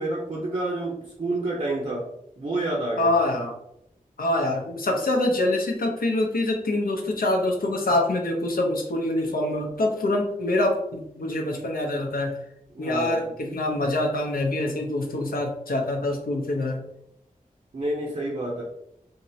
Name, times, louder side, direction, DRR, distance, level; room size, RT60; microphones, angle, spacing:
voice 1, 0.0-2.1 2.4-3.1 12.7-13.3 17.7-18.6, right 2 dB, 50° right, -4 dB, 0.6 m, -29 dB
voice 2, 3.0-3.6 4.2-12.4 12.8-16.8, left 1 dB, 85° left, 1 dB, 0.6 m, -25 dB
3.5 x 2.0 x 2.7 m, 0.76 s
wide cardioid pair, 65°, 15 cm